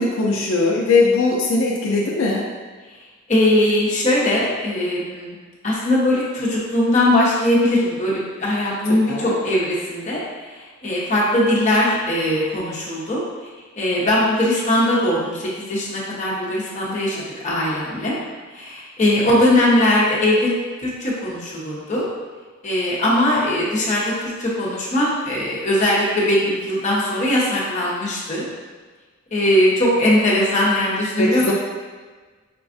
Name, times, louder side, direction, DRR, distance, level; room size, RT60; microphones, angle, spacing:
voice 1, 0.0-2.5 9.1-9.4 31.2-31.5, left 3 dB, 85° left, -2 dB, 0.5 m, -19 dB
voice 2, 3.3-5.4 5.6-10.2 10.8-13.2 13.7-17.2 17.4-18.2 18.5-20.5 20.8-22.0 22.6-28.5 29.3-31.5, left 1 dB, 35° left, -6 dB, 0.9 m, -20 dB
5.1 x 2.3 x 2.5 m, 1.4 s
head